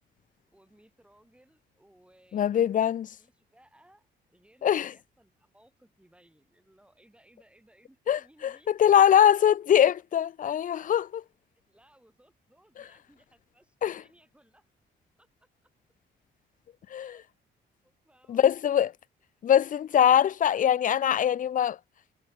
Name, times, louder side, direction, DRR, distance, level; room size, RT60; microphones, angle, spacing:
voice 1, 0.5-2.9 3.2-8.7 11.7-14.7 15.2-15.5 16.9-17.3 17.8-18.5 19.9-20.2, right 1 dB, 5° right, 5.6 m, -62 dB
voice 2, 2.3-3.1 4.6-4.9 8.1-11.2 13.8-14.0 16.9-17.2 18.3-18.9 19.4-21.8, left 9 dB, 45° left, 0.4 m, -22 dB
cardioid pair, 90°, 20 cm